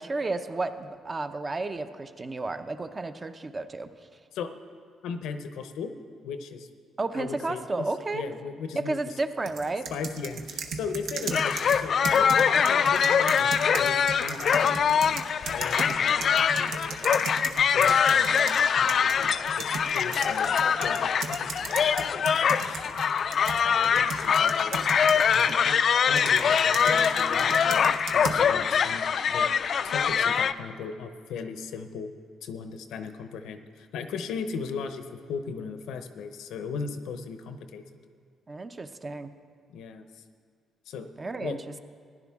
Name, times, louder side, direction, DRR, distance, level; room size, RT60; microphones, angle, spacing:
voice 1, 0.0-3.9 7.0-8.2 8.7-9.9 38.5-39.3 41.2-41.6, right 3 dB, 30° right, 9 dB, 0.6 m, -32 dB
voice 2, 5.0-5.9 6.2-6.7 7.1-9.2 9.9-15.2 15.4-17.3 17.7-20.5 20.8-23.0 23.6-24.8 25.3-25.8 26.1-29.5 29.8-32.1 32.4-37.8 39.7-40.2 40.9-41.1 41.4-41.6, left 5 dB, 85° left, 8 dB, 0.7 m, -38 dB
sound 1, 9.5-18.6 18.9-25.6 26.2-28.4, right 5 dB, 75° right, 1.0 m, -37 dB
sound 2, 11.3-30.5, left 7 dB, 55° left, 0.3 m, -23 dB
15.5 x 11.0 x 3.6 m, 2.2 s
cardioid pair, 90°, 0 cm